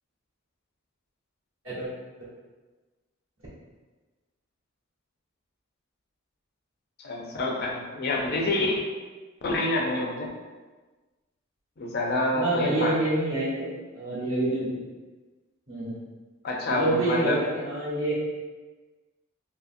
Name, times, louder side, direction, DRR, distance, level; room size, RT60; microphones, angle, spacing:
voice 1, 7.0-8.9 9.4-10.3 11.8-12.9 16.4-17.4, left 2 dB, 45° left, 0 dB, 0.4 m, -27 dB
voice 2, 12.3-14.7 15.7-16.0 16.7-18.1, right 2 dB, 65° right, -7 dB, 1.0 m, -27 dB
2.8 x 2.5 x 2.5 m, 1.3 s
head